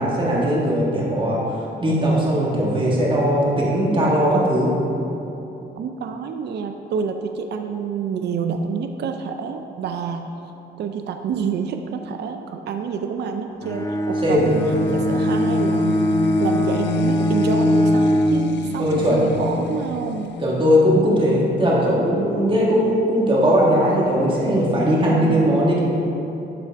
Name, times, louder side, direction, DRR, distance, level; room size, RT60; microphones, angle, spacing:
voice 1, 0.0-4.7 14.2-14.5 18.8-19.3 20.4-25.8, equal, 25° right, -5 dB, 1.8 m, -19 dB
voice 2, 5.8-10.3 10.8-16.1 16.4-19.0 19.4-20.4 25.1-25.6, right 6 dB, 60° right, 6 dB, 0.5 m, -28 dB
Bowed string instrument, 13.6-18.5, equal, 15° left, 0.5 m, -21 dB
sound 1, 14.4-21.0, left 6 dB, 65° left, 0.4 m, -28 dB
12.0 x 4.4 x 3.6 m, 3.0 s
cardioid pair, 90°, 20 cm